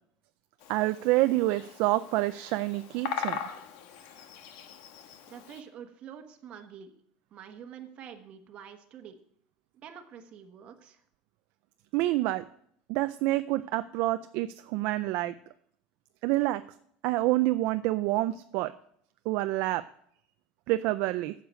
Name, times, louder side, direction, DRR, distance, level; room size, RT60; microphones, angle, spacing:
Bird vocalization bird call bird song, 0.6-5.6, left 8 dB, 70° left, 1.2 m, -40 dB
voice 1, 0.7-3.4 11.9-12.4 12.9-15.3 16.2-16.6 17.0-18.7 19.3-19.8 20.7-21.3, right 17 dB, 60° right, 10 dB, 0.4 m, -27 dB
voice 2, 5.3-7.0 7.3-9.2 9.8-11.0, right 8 dB, 35° right, 6 dB, 1.2 m, -47 dB
9.5 x 6.7 x 7.6 m, 0.66 s
cardioid pair, 160°, 3 cm